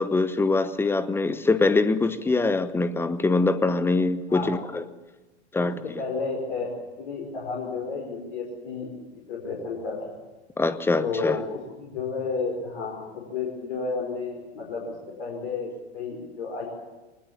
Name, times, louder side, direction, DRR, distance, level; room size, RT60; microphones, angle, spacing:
voice 1, 0.0-4.8 5.5-5.8 10.6-11.4, left 3 dB, 5° left, 1.0 m, -23 dB
voice 2, 5.6-6.7 7.0-10.2 11.0-14.9 15.2-16.7, left 4 dB, 55° left, 5.2 m, -32 dB
21.5 x 20.0 x 8.6 m
figure-of-eight pair, 95°, 33 cm